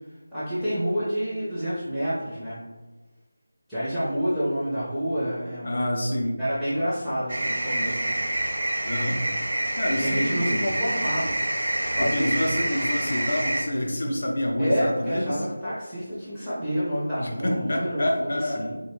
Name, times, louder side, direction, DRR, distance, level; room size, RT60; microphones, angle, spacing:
voice 1, 0.3-2.6 3.7-6.0 6.4-8.2 9.8-11.4 11.9-12.3 14.6-18.8, equal, ahead, -15 dB, 0.4 m, -28 dB
voice 2, 5.6-6.4 8.8-9.2 9.8-10.7 12.0-15.4 17.2-18.6, left 1 dB, 55° left, 0 dB, 0.5 m, -27 dB
sound 1, 7.3-13.6, right 1 dB, 65° right, 0.6 m, -27 dB
2.4 x 2.1 x 3.0 m, 1.2 s
figure-of-eight pair, 175°, 0 cm